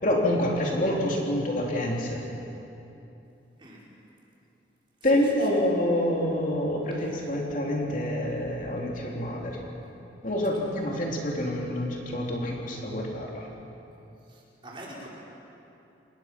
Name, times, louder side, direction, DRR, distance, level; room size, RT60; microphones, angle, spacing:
voice 1, 0.0-2.2 5.0-9.6 10.2-13.5, left 1 dB, 45° left, -2 dB, 3.2 m, -27 dB
voice 2, 14.3-15.1, right 1 dB, 25° right, -5 dB, 4.8 m, -43 dB
28.5 x 20.0 x 5.9 m, 2.9 s
head